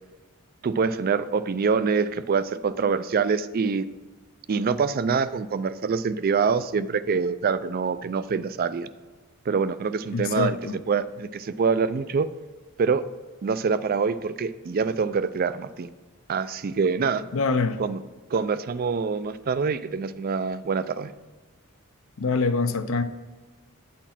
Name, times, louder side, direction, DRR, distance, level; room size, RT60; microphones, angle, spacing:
voice 1, 0.6-3.9 4.5-8.9 9.5-10.6 10.9-12.3 12.8-13.0 13.4-15.9 16.3-17.2 17.8-18.0 18.3-21.1, right 5 dB, 45° right, 14 dB, 0.4 m, -25 dB
voice 2, 10.1-10.8 17.3-17.8 22.2-23.0, left 4 dB, 65° left, 10 dB, 0.6 m, -24 dB
9.0 x 4.3 x 5.7 m, 1.2 s
head